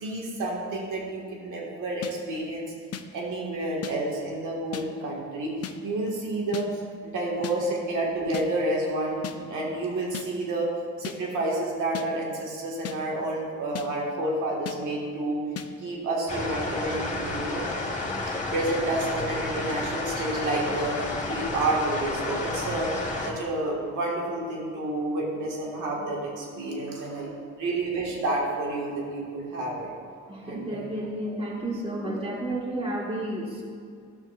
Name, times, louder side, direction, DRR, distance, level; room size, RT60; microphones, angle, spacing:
voice 1, 0.0-2.7 3.1-10.7 11.0-15.4 15.8-17.7 18.5-21.0 21.2-22.9 23.3-27.3 27.6-29.9 30.4-30.9, right 2 dB, 80° right, -3 dB, 2.0 m, -29 dB
sound 1, 2.0-2.1 2.9-3.0 3.8-3.9 4.7-4.9 5.6-5.8 6.5-6.7 7.4-7.6 8.3-8.5 9.2-9.4 10.1-10.3 11.0-11.2 11.9-12.1 12.8-13.0 13.7-13.9 14.7-14.8 15.6-15.7, left 10 dB, 55° left, 0.6 m, -35 dB
sound 2, 16.3-23.3, left 2 dB, 25° left, 1.5 m, -31 dB
voice 2, 30.2-33.6, right 1 dB, 20° right, -5 dB, 1.7 m, -32 dB
14.5 x 6.2 x 2.6 m, 2.3 s
cardioid pair, 90°, 30 cm